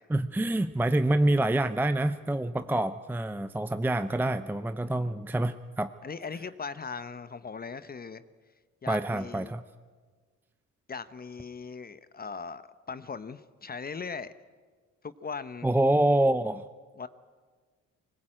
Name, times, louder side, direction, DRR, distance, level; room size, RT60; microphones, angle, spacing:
voice 1, 0.1-5.9 8.9-9.6 15.6-16.6, right 1 dB, 5° right, 11 dB, 0.6 m, -26 dB
voice 2, 6.0-8.2 8.8-9.5 10.9-14.3 15.0-15.7 17.0-17.1, left 5 dB, 30° left, 14 dB, 0.8 m, -39 dB
20.0 x 20.0 x 8.9 m, 1.5 s
cardioid pair, 90°, 30 cm